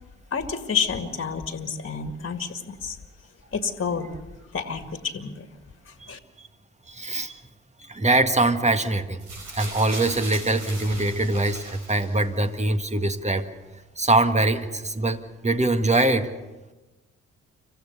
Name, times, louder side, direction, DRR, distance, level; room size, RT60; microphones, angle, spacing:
voice 1, 0.3-3.0 3.5-4.1 4.5-5.5 5.9-6.2, left 6 dB, 40° left, 7 dB, 2.0 m, -29 dB
voice 2, 6.9-7.4 7.9-9.2 9.5-13.5 14.0-16.3, right 2 dB, 20° right, 9 dB, 1.7 m, -23 dB
sound 1, 9.2-12.4 13.3-13.4, right 2 dB, 80° right, 5.0 m, -38 dB
26.0 x 15.0 x 6.8 m, 1.2 s
hypercardioid pair, 45°, 34 cm